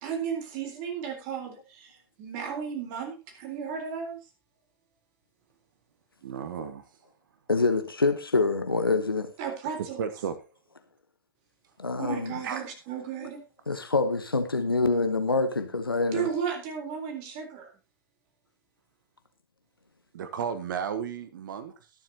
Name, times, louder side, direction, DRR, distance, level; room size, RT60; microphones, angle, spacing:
voice 1, 0.0-4.2 9.4-10.0 12.0-13.4 16.1-17.7, right 7 dB, 45° right, 3.8 m, -34 dB
voice 2, 6.2-6.9 10.0-10.4 12.4-12.6 20.1-21.9, right 7 dB, 65° right, 1.2 m, -33 dB
voice 3, 7.5-9.3 11.8-12.4 13.7-16.3, left 3 dB, 90° left, 1.0 m, -26 dB
22.0 x 7.5 x 2.8 m
figure-of-eight pair, 95°, 12 cm